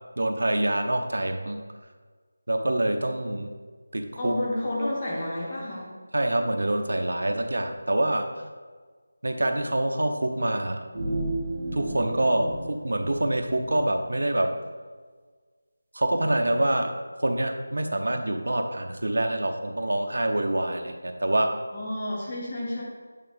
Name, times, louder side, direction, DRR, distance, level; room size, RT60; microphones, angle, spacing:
voice 1, 0.2-1.6 2.5-3.5 3.9-4.3 6.1-8.3 9.2-10.8 11.7-14.5 15.9-16.9 17.2-21.5, right 1 dB, 75° right, 5 dB, 0.7 m, -26 dB
voice 2, 4.2-5.9 21.7-22.8, left 1 dB, 20° left, -4 dB, 0.7 m, -30 dB
sound 1, 10.9-13.8, right 2 dB, 20° right, 1.6 m, -33 dB
8.4 x 3.5 x 3.5 m, 1.5 s
figure-of-eight pair, 180°, 0 cm